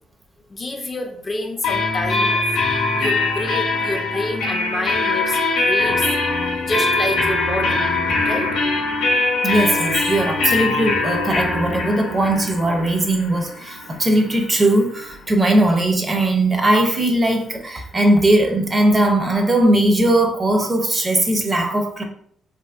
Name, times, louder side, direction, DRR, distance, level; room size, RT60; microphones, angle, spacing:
voice 1, 0.5-2.6 3.0-6.1 6.6-7.8 8.2-8.5, left 2 dB, 30° left, 3 dB, 0.4 m, -28 dB
sound 1, 1.6-15.2, left 3 dB, 90° left, 0.6 m, -22 dB
voice 2, 9.4-22.0, right 1 dB, 25° right, 3 dB, 0.6 m, -19 dB
2.7 x 2.6 x 2.4 m, 0.64 s
cardioid pair, 90°, 0 cm